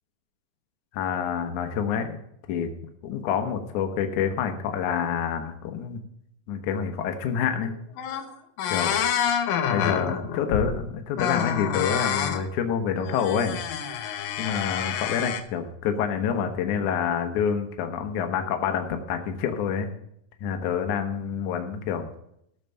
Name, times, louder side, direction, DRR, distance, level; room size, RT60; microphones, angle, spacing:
voice 1, 0.9-2.2 2.5-2.7 3.0-6.0 6.5-7.7 8.7-9.0 9.7-13.6 14.4-19.9 20.4-22.1, left 7 dB, 70° left, 5 dB, 2.4 m, -27 dB
sound 1, 7.6-7.7 8.0-8.3 8.6-10.8 11.2-12.4 13.0-15.4, left 8 dB, 85° left, 2.7 m, -27 dB
14.5 x 6.7 x 5.6 m, 0.73 s
omnidirectional pair, 3.9 m